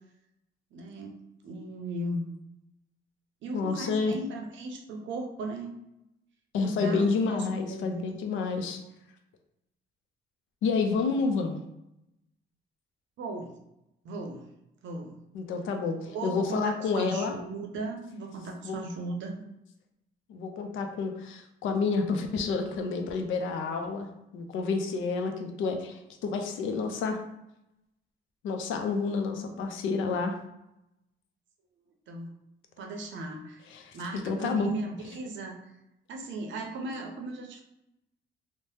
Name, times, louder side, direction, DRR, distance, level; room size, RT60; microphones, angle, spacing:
voice 1, 0.7-2.3 3.4-5.7 6.6-8.0 13.2-13.5 14.0-14.5 14.8-15.2 16.1-19.4 32.1-32.3 32.8-33.6 33.9-35.5 36.1-37.6, right 2 dB, 70° right, 3 dB, 0.6 m, -37 dB
voice 2, 3.5-4.1 6.5-8.8 10.6-11.6 15.3-17.4 18.6-18.8 20.3-24.1 24.3-27.2 28.4-30.3 33.7-34.7, left 4 dB, 80° left, 5 dB, 0.5 m, -29 dB
2.7 x 2.1 x 3.2 m, 0.87 s
cardioid pair, 90°, 20 cm